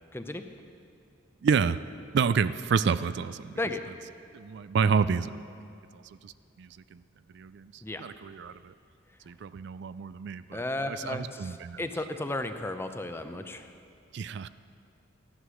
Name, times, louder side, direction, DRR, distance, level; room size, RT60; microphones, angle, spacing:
voice 1, 0.1-0.4 3.6-3.8 7.8-8.0 10.5-13.7, left 2 dB, 10° left, 8 dB, 0.6 m, -34 dB
voice 2, 1.4-1.8 2.1-3.6 4.3-5.5 5.9-7.0 7.3-8.7 9.3-11.8 14.1-14.5, right 6 dB, 55° right, 14 dB, 0.3 m, -29 dB
15.5 x 11.0 x 6.3 m, 2.4 s
head